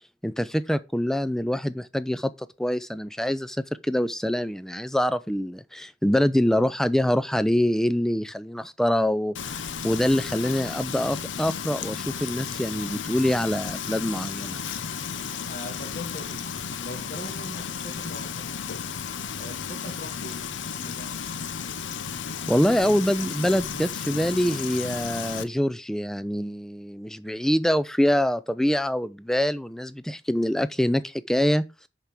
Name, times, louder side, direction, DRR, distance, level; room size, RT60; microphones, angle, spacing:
voice 1, 0.2-2.3 2.6-14.6 22.5-31.6, equal, 5° left, 0.4 m, -25 dB
Frying (food), 9.4-25.4, left 7 dB, 80° left, 0.6 m, -34 dB
voice 2, 15.5-18.5 19.3-20.4 20.8-21.1, left 1 dB, 45° left, 1.9 m, -40 dB
6.7 x 4.8 x 5.9 m
head